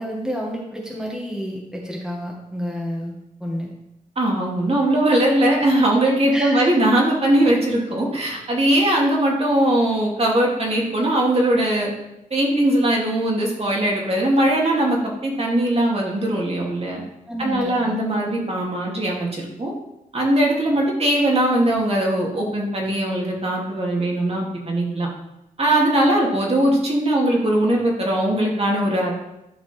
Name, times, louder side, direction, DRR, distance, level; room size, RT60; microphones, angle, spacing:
voice 1, 0.0-3.2 3.4-3.7 6.3-6.7 17.3-18.0, equal, 5° right, -2 dB, 1.8 m, -30 dB
voice 2, 4.2-11.9 12.3-17.0 17.4-19.7 20.1-25.1 25.6-29.1, right 1 dB, 45° right, -2 dB, 2.4 m, -20 dB
11.5 x 5.1 x 4.4 m, 0.89 s
wide cardioid pair, 85°, 15 cm